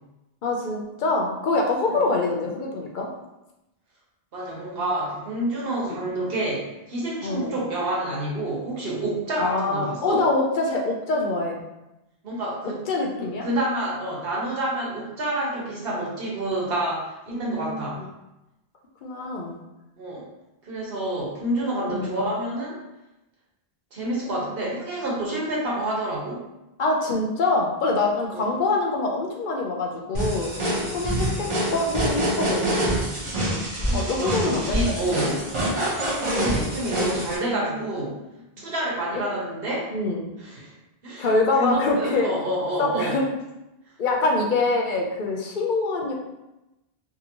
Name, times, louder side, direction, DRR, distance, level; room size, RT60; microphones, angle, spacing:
voice 1, 0.4-3.1 5.8-6.0 7.2-7.6 9.4-11.6 12.6-13.5 17.3-18.0 19.0-19.5 21.9-22.1 26.8-32.9 33.9-35.3 37.0-37.9 39.9-40.3 41.2-42.3 42.8-43.2 44.0-46.1, left 3 dB, 60° left, 0 dB, 0.7 m, -25 dB
voice 2, 4.3-10.2 12.2-12.8 13.2-18.0 20.0-20.3 20.6-22.8 23.9-26.4 28.3-28.5 31.3-31.5 33.9-35.4 36.4-38.2 38.6-39.9 40.4-40.7 41.0-41.3 41.6-43.2, right 1 dB, 70° right, -4 dB, 1.1 m, -28 dB
sound 1, 30.1-37.4, right 1 dB, 35° right, 0.7 m, -26 dB
2.7 x 2.6 x 2.8 m, 0.96 s
omnidirectional pair, 1.0 m